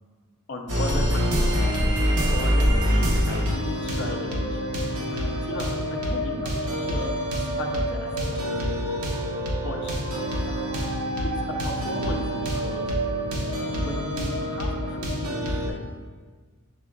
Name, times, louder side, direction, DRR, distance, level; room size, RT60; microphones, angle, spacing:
voice 1, 0.5-1.7 2.3-4.7 5.1-8.4 8.8-8.9 9.3-10.0 11.2-12.9 13.7-15.9, left 2 dB, 55° left, 2 dB, 0.6 m, -37 dB
sound 1, 0.7-15.7, equal, 80° right, 0.9 m, -26 dB
6.1 x 3.5 x 2.3 m, 1.4 s
head